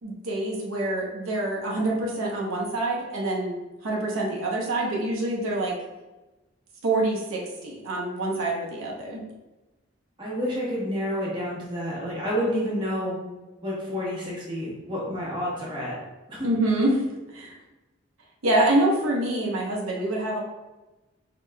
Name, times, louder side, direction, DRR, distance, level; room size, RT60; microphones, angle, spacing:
voice 1, 0.0-3.5 3.8-5.7 6.8-9.2 16.4-17.0 17.3-17.5 18.4-20.4, right 1 dB, 85° right, -2 dB, 0.8 m, -26 dB
voice 2, 10.2-13.2 13.6-15.9 16.3-16.5, equal, 20° right, -6 dB, 1.0 m, -29 dB
4.7 x 2.9 x 2.2 m, 1.1 s
head